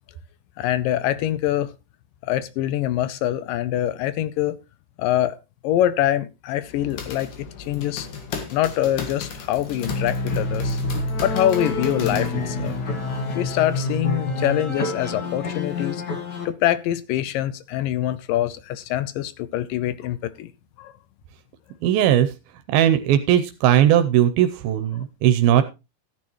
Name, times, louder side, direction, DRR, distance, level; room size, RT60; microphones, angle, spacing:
voice 1, 0.6-1.7 2.2-4.6 5.0-5.4 5.6-8.1 8.5-10.8 11.2-12.7 13.4-16.0 16.5-20.5 20.8-20.9 25.0-25.1, left 12 dB, 80° left, 2.2 m, -24 dB
sound 1, 6.6-12.8, left 6 dB, 60° left, 3.1 m, -36 dB
sound 2, 9.7-16.4, left 2 dB, 40° left, 1.6 m, -27 dB
voice 2, 21.8-22.3 22.7-25.6, right 11 dB, 85° right, 2.6 m, -18 dB
14.5 x 9.6 x 3.0 m
omnidirectional pair, 4.2 m